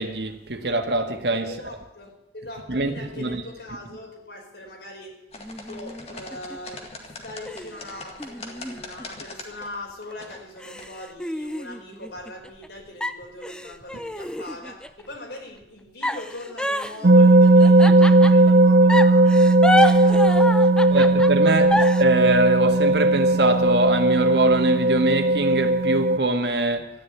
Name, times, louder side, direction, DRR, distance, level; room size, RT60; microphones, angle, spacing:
voice 1, 0.0-1.5 2.7-3.4 17.8-18.0 20.9-26.9, right 2 dB, 70° right, 1.7 m, -23 dB
voice 2, 1.4-5.1 5.6-6.8 7.2-19.3 19.7-21.1 21.7-21.8, left 1 dB, 70° left, 4.8 m, -40 dB
sound 1, 5.3-10.8, left 2 dB, 35° left, 2.0 m, -42 dB
sound 2, 5.4-6.7 7.5-9.6 10.1-10.2 10.6-12.7 13.0-15.0 16.0-18.5 18.9-22.0, left 1 dB, 5° left, 0.6 m, -28 dB
sound 3, 17.0-26.2, right 2 dB, 55° right, 0.6 m, -16 dB
13.5 x 10.5 x 9.3 m
head